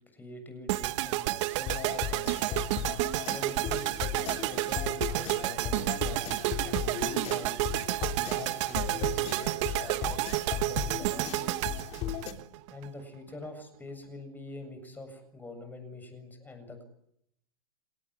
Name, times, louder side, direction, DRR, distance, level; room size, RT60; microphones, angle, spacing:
voice 1, 0.1-3.9 4.5-7.6 8.2-11.7 12.7-16.8, left 2 dB, 10° left, 8 dB, 7.6 m, -45 dB
sound 1, 0.7-12.9, right 18 dB, 55° right, 1.3 m, -31 dB
sound 2, 1.7-12.3, left 9 dB, 35° left, 3.3 m, -37 dB
29.0 x 19.0 x 9.8 m, 0.76 s
hypercardioid pair, 135°, 19 cm